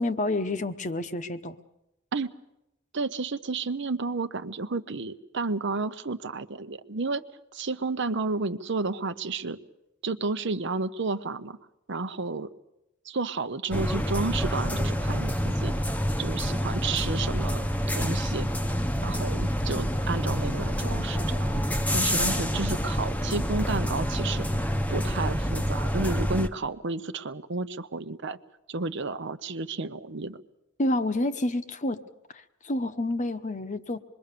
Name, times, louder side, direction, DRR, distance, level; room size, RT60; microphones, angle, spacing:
voice 1, 0.0-1.6 30.8-32.0 32.3-34.0, left 1 dB, 40° left, 11 dB, 0.9 m, -29 dB
voice 2, 2.9-7.2 7.5-9.6 10.0-11.6 11.9-12.5 13.0-15.7 16.2-17.7 18.0-18.5 19.0-21.6 21.9-24.5 24.9-28.4 28.7-30.4, right 3 dB, 65° right, 11 dB, 0.9 m, -31 dB
sound 1, 13.7-26.5, equal, 10° left, 0.9 m, -27 dB
25.5 x 22.0 x 6.8 m, 0.88 s
head